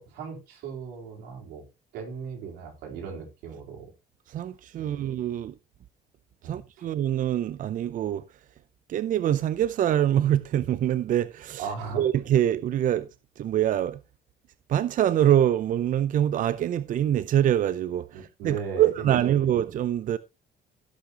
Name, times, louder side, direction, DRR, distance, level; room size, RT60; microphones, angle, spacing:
voice 1, 0.0-1.6 1.9-3.9 4.8-5.0 6.4-6.6 11.6-12.1 18.1-19.2, right 6 dB, 90° right, 3.9 m, -37 dB
voice 2, 4.3-5.5 6.4-8.2 8.9-11.7 12.0-13.1 13.4-14.0 14.7-20.2, right 11 dB, 50° right, 0.6 m, -24 dB
16.5 x 6.5 x 2.9 m
cardioid pair, 110°, 17 cm